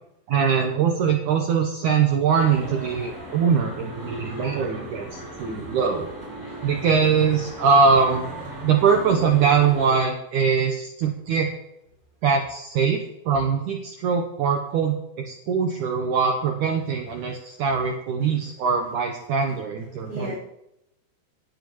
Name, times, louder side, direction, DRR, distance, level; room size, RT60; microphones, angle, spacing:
voice 1, 0.3-6.1 6.6-8.3 8.6-11.5 12.2-15.0 15.3-20.3, right 6 dB, 90° right, 2 dB, 1.7 m, -22 dB
sound 1, 2.3-10.0, right 1 dB, 5° right, 4.3 m, -37 dB
voice 2, 17.2-17.6 18.2-18.4 19.9-20.4, right 1 dB, 70° right, 0 dB, 1.7 m, -37 dB
18.5 x 9.4 x 3.1 m, 0.85 s
omnidirectional pair, 4.9 m